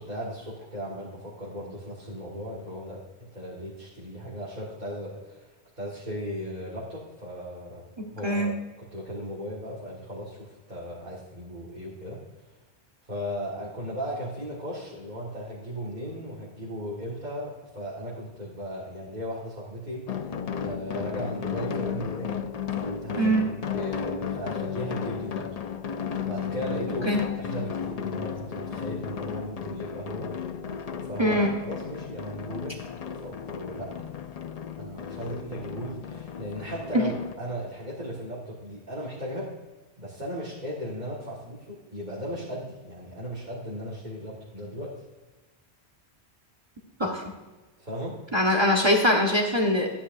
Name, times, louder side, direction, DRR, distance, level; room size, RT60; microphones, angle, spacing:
voice 1, 0.0-7.8 8.1-8.5 8.8-12.2 13.1-22.4 22.7-25.6 26.3-30.3 31.0-32.8 33.1-34.1 34.8-39.6 40.0-45.0 47.8-48.2, equal, 40° right, -7 dB, 2.1 m, -36 dB
voice 2, 8.0-8.5 23.2-23.5 27.0-27.2 31.2-31.5 36.9-37.0 47.0-47.2 48.3-49.9, equal, 25° right, 1 dB, 1.2 m, -23 dB
sound 1, 20.1-37.3, left 7 dB, 50° left, 0.5 m, -34 dB
13.0 x 10.0 x 2.6 m, 1.2 s
omnidirectional pair, 1.1 m